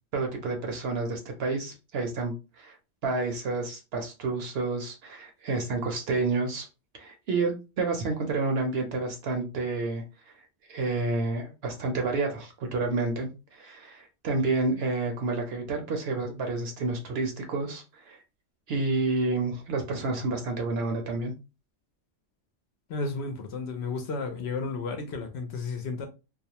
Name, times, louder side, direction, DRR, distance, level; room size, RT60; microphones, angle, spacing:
voice 1, 0.1-2.8 3.0-6.7 7.0-10.0 10.7-18.2 18.7-21.3, right 3 dB, 60° right, 0.7 m, -29 dB
voice 2, 22.9-26.1, left 4 dB, 65° left, 0.8 m, -33 dB
2.4 x 2.0 x 2.8 m
omnidirectional pair, 1.3 m